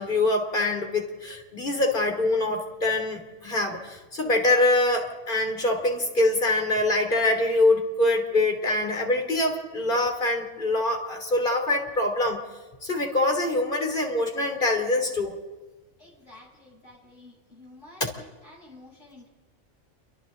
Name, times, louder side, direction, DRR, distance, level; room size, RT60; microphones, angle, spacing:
voice 1, 0.0-12.4 12.8-15.3 18.0-18.1, left 2 dB, 35° left, 3 dB, 3.3 m, -24 dB
voice 2, 16.0-19.3, left 2 dB, 60° left, -2 dB, 8.4 m, -50 dB
29.0 x 24.5 x 3.9 m, 1.2 s
omnidirectional pair, 1.4 m